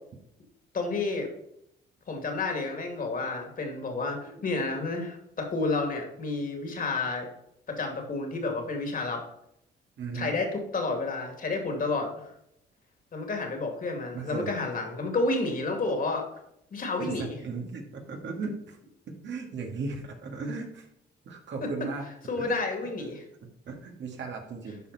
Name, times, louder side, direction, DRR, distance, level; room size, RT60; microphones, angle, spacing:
voice 1, 0.7-1.3 2.1-7.3 7.7-9.2 10.1-12.1 13.1-16.3 16.7-17.4 21.6-21.7 22.3-23.2, left 3 dB, 45° left, 3 dB, 2.4 m, -30 dB
voice 2, 10.0-10.4 14.1-14.5 17.0-18.8 19.1-20.9 21.3-22.1 22.4-22.6 23.4-24.8, right 4 dB, 65° right, 2 dB, 2.0 m, -36 dB
11.5 x 4.4 x 4.1 m, 0.77 s
cardioid pair, 90°, 20 cm